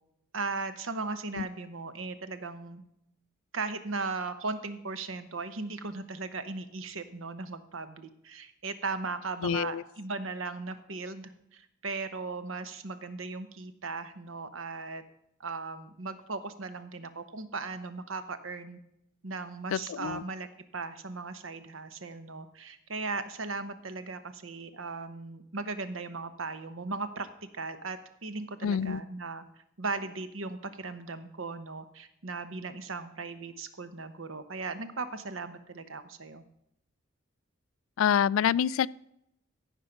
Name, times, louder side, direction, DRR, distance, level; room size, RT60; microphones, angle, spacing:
voice 1, 0.3-2.8 3.5-15.0 15.4-18.8 19.2-20.5 20.7-27.3 27.5-29.4 29.8-36.4, right 3 dB, 65° right, 11 dB, 1.0 m, -37 dB
voice 2, 9.4-9.8 19.7-20.2 28.6-29.0 38.0-38.9, left 8 dB, 70° left, 22 dB, 0.3 m, -27 dB
15.0 x 5.4 x 5.8 m, 0.78 s
head